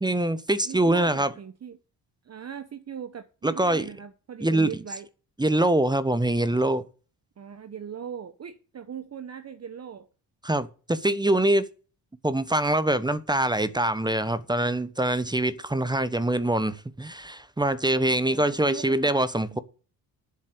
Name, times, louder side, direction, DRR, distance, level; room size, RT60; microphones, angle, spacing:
voice 1, 0.0-1.3 3.4-3.9 4.4-4.7 5.4-6.8 10.4-11.6 12.2-19.6, right 1 dB, 10° right, 1.0 m, -24 dB
voice 2, 0.6-1.8 2.2-5.1 7.4-10.1 18.1-19.1 19.5-19.6, right 8 dB, 40° right, 1.0 m, -39 dB
7.6 x 7.3 x 8.1 m
supercardioid pair, 70°, 38 cm